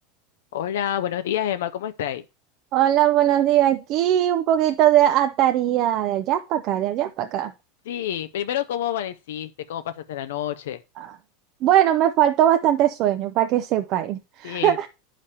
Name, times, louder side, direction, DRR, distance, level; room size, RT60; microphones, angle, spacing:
voice 1, 0.5-2.2 7.9-10.8 14.4-14.8, left 11 dB, 90° left, 0.4 m, -28 dB
voice 2, 2.7-7.5 11.0-11.2 11.6-14.9, right 12 dB, 45° right, 0.4 m, -20 dB
9.7 x 5.0 x 2.8 m
supercardioid pair, 145°, 0 cm